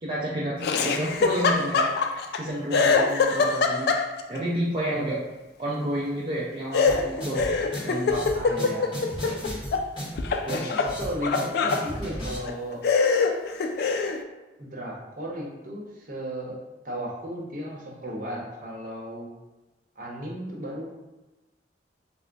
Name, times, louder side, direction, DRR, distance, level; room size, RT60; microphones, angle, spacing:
voice 1, 0.0-1.9 2.3-4.0 4.3-5.2 5.6-7.5 7.8-8.3, right 1 dB, 30° right, -8 dB, 0.5 m, -30 dB
Laughter, 0.6-2.4 2.7-4.4 6.7-9.9 10.2-11.9 12.4-12.5 12.8-14.2, left 4 dB, 60° left, 0.3 m, -24 dB
sound 1, 6.9-12.4, equal, 30° left, 1.4 m, -35 dB
voice 2, 8.3-8.9 10.4-12.8 14.6-16.6 16.8-19.3 20.0-20.8, equal, 50° right, -3 dB, 0.8 m, -35 dB
3.3 x 2.1 x 3.8 m, 1.1 s
head